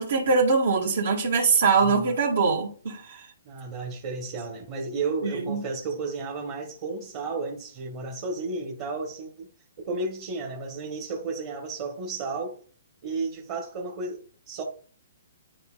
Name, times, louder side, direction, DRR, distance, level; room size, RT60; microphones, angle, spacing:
voice 1, 0.0-3.2 5.2-5.6, right 4 dB, 70° right, 1.9 m, -23 dB
voice 2, 1.8-2.1 3.4-9.5 9.8-12.6 13.0-14.6, right 3 dB, 35° right, 1.4 m, -33 dB
11.0 x 4.3 x 2.5 m
hypercardioid pair, 155°, 0 cm